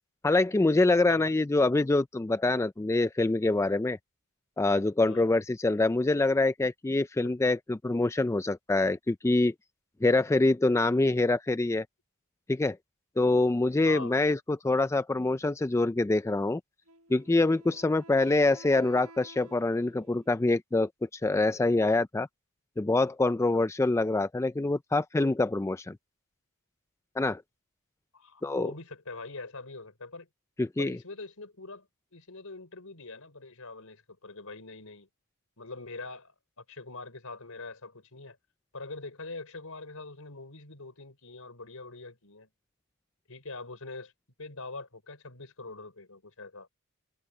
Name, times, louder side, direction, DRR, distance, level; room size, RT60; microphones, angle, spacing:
voice 1, 0.2-4.0 4.6-9.5 10.0-11.9 12.5-12.8 13.2-16.6 17.1-22.3 22.8-26.0 27.2-27.4 28.4-28.7 30.6-31.0, left 2 dB, 10° left, 0.3 m, -25 dB
voice 2, 13.9-14.2 28.1-30.3 30.8-31.9 32.1-35.1 35.6-38.4 38.7-42.5 43.3-44.1 44.4-46.7, left 3 dB, 70° left, 4.9 m, -43 dB
Wind instrument woodwind instrument, 16.9-20.5, right 2 dB, 75° right, 1.2 m, -52 dB
head